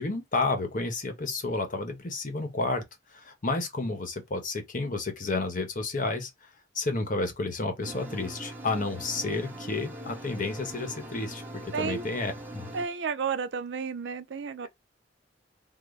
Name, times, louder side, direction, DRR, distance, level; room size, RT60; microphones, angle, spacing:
voice 1, 0.0-2.8 3.1-6.5 6.7-12.7, left 3 dB, 45° left, 0.9 m, -31 dB
sound 1, 7.8-12.9, right 1 dB, 10° right, 0.9 m, -41 dB
voice 2, 11.7-12.0 12.7-14.7, right 6 dB, 70° right, 0.4 m, -32 dB
3.9 x 2.0 x 3.2 m
head